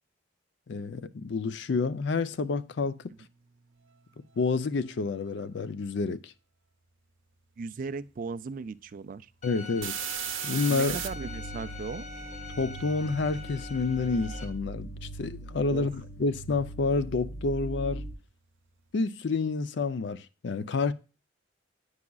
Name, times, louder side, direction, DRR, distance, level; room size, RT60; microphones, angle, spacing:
voice 1, 0.7-3.0 4.4-6.3 9.4-10.1 10.4-11.0 12.6-18.0 18.9-20.9, left 4 dB, 60° left, 0.4 m, -29 dB
sound 1, 2.4-2.5 3.3-5.4 9.8-11.1 13.5-15.7 16.0-16.1, right 11 dB, 80° right, 0.7 m, -37 dB
voice 2, 7.6-9.3 10.7-12.0 15.7-15.9, right 4 dB, 45° right, 0.3 m, -37 dB
Bowed string instrument, 9.4-14.4, left 4 dB, 35° left, 1.3 m, -43 dB
sound 2, 10.9-18.1, right 1 dB, 15° left, 0.7 m, -41 dB
9.5 x 4.8 x 2.3 m
head